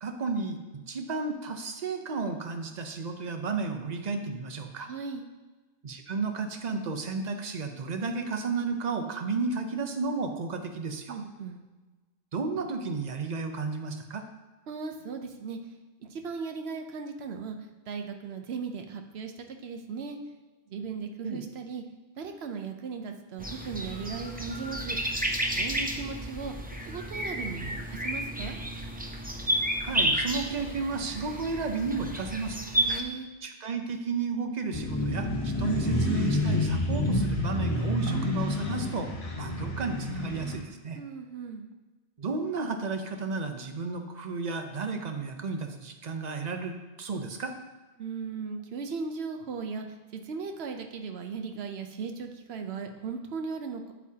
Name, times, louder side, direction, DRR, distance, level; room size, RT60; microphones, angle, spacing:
voice 1, 0.0-4.9 5.8-11.2 12.3-14.2 21.2-21.4 29.8-32.6 33.4-39.1 39.4-41.0 42.2-47.5, right 4 dB, 45° right, 6 dB, 0.7 m, -33 dB
voice 2, 4.9-5.2 11.1-11.6 14.7-15.6 16.0-17.6 17.9-20.2 20.7-21.8 22.2-25.0 25.6-26.5 26.9-28.6 32.7-33.3 41.0-41.7 48.0-49.9 50.1-53.9, right 5 dB, 80° right, 5 dB, 1.0 m, -37 dB
sound 1, 23.4-33.0, right 1 dB, 15° right, 0.4 m, -31 dB
sound 2, 34.7-40.6, left 1 dB, 50° left, 2.0 m, -28 dB
8.3 x 7.2 x 2.8 m, 1.2 s
omnidirectional pair, 1.1 m